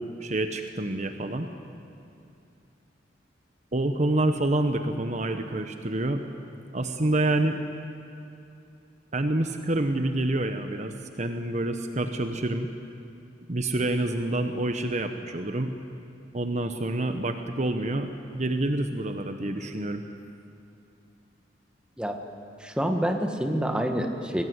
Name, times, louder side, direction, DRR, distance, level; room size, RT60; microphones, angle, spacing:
voice 1, 0.0-1.5 3.7-6.2 6.7-7.6 9.1-12.7 13.5-15.7 16.3-20.0, right 1 dB, 40° right, 7 dB, 1.1 m, -27 dB
voice 2, 22.6-24.4, equal, 5° right, 4 dB, 1.7 m, -27 dB
23.5 x 19.0 x 9.5 m, 2.7 s
head